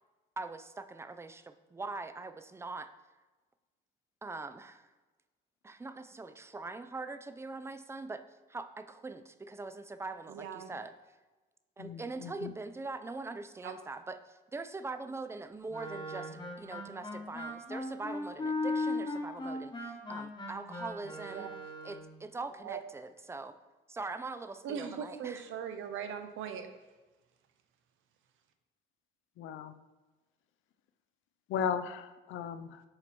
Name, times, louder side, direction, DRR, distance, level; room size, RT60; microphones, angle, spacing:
voice 1, 0.4-2.9 4.2-4.8 5.6-8.2 8.5-10.9 11.8-21.5 21.8-23.5 23.9-25.5, right 3 dB, 15° right, 11 dB, 0.3 m, -42 dB
voice 2, 10.3-10.7 13.6-13.7 21.3-21.5 22.6-22.8 24.6-26.7, right 8 dB, 85° right, 8 dB, 0.6 m, -39 dB
voice 3, 11.8-12.5 29.4-29.7 31.5-32.8, left 7 dB, 80° left, 11 dB, 0.5 m, -36 dB
Wind instrument woodwind instrument, 15.7-22.1, left 2 dB, 20° left, 1.1 m, -37 dB
7.6 x 3.0 x 4.2 m, 1.2 s
cardioid pair, 90°, 20 cm